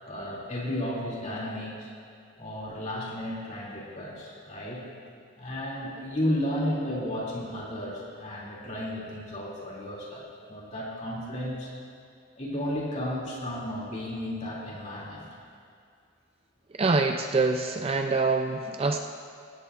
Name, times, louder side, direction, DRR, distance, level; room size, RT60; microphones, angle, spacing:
voice 1, 0.1-1.9 2.4-4.8 5.4-11.7 12.4-15.3, left 1 dB, 35° left, -4 dB, 2.6 m, -33 dB
voice 2, 16.8-19.0, right 3 dB, 25° right, 4 dB, 0.4 m, -25 dB
17.0 x 16.0 x 2.5 m, 2.3 s
head